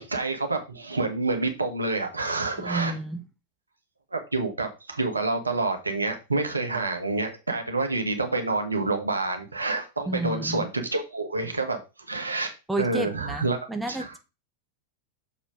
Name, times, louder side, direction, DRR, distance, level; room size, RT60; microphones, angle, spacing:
voice 1, 0.0-2.9 4.1-13.6 13.9-14.1, right 3 dB, 80° right, 1.6 m, -28 dB
voice 2, 2.6-3.2 10.1-10.7 12.7-14.2, right 1 dB, 5° right, 1.1 m, -31 dB
6.7 x 5.1 x 5.0 m
figure-of-eight pair, 90°, 0 cm